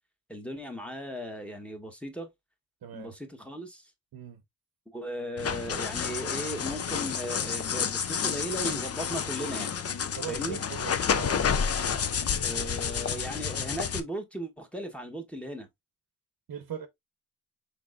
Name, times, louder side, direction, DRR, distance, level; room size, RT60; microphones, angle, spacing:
voice 1, 0.3-2.3 2.9-3.9 4.9-9.7 10.3-10.6 12.4-15.7, equal, 5° left, 1.0 m, -37 dB
voice 2, 2.8-3.1 4.1-4.4 10.1-11.4 16.5-16.9, right 8 dB, 75° right, 0.9 m, -40 dB
sound 1, 5.4-14.0, left 7 dB, 40° left, 0.5 m, -30 dB
6.1 x 3.7 x 2.4 m
wide cardioid pair, 145°, 37 cm